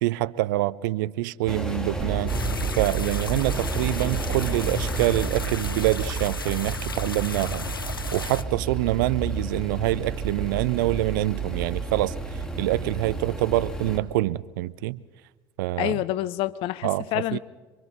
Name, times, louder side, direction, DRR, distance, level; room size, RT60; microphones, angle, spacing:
voice 1, 0.0-2.3 2.8-7.7 8.1-15.0 15.6-16.0 16.8-17.4, right 17 dB, 65° right, 0.5 m, -26 dB
sound 1, 1.5-14.0, right 1 dB, 5° left, 2.2 m, -33 dB
sound 2, 2.0-13.0, right 8 dB, 40° right, 6.3 m, -34 dB
sound 3, 2.3-8.4, left 4 dB, 85° left, 0.6 m, -35 dB
voice 2, 15.8-17.4, left 14 dB, 55° left, 0.7 m, -27 dB
27.5 x 23.0 x 4.2 m
figure-of-eight pair, 65°, 11 cm